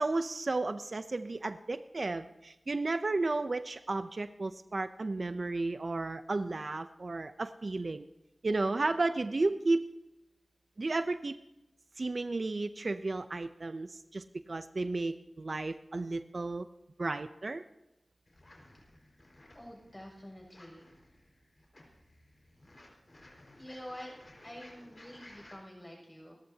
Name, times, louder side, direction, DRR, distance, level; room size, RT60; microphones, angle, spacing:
voice 1, 0.0-8.1 8.4-9.9 10.8-11.4 12.0-16.7 17.0-17.6, right 3 dB, 55° right, 10 dB, 0.5 m, -33 dB
sound 1, 18.3-25.6, left 1 dB, 45° left, 4.9 m, -57 dB
voice 2, 19.5-20.9 23.5-24.1 24.4-26.4, equal, 15° left, 0 dB, 6.8 m, -47 dB
28.5 x 13.5 x 2.8 m, 0.94 s
wide cardioid pair, 60°, 0 cm